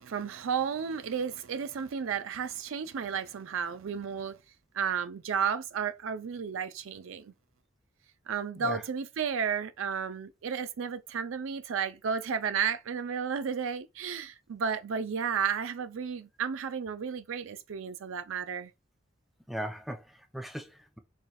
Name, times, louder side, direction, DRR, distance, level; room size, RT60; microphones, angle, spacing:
voice 1, 0.0-4.4 4.7-7.3 8.3-18.7, right 6 dB, 80° right, 0.4 m, -33 dB
voice 2, 19.5-21.0, equal, ahead, 0.4 m, -38 dB
4.3 x 3.1 x 2.3 m
head